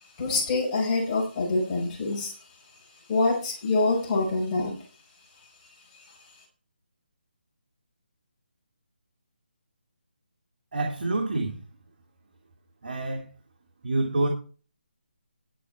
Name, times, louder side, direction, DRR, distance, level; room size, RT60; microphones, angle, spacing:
voice 1, 0.2-2.4 3.1-4.7, left 3 dB, 25° left, 5.2 m, -25 dB
voice 2, 10.7-11.6 12.8-13.3 13.8-14.3, right 2 dB, 60° right, 2.6 m, -27 dB
11.0 x 8.6 x 4.6 m
figure-of-eight pair, 160°, 6 cm